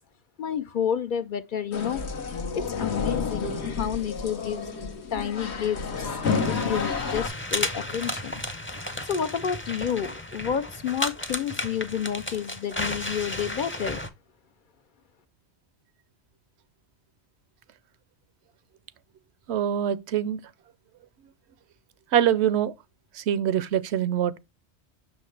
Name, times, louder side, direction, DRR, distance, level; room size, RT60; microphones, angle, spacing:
voice 1, 0.4-2.0 2.5-4.6 5.1-6.2 6.5-8.4 9.0-14.0, left 8 dB, 60° left, 0.6 m, -30 dB
sound 1, 1.7-7.3, left 5 dB, 75° left, 1.3 m, -30 dB
sound 2, 6.2-14.1, left 1 dB, 15° left, 0.6 m, -33 dB
voice 2, 19.5-20.4 22.1-22.7 23.1-24.4, right 10 dB, 80° right, 0.8 m, -24 dB
6.2 x 5.7 x 3.2 m
omnidirectional pair, 1.1 m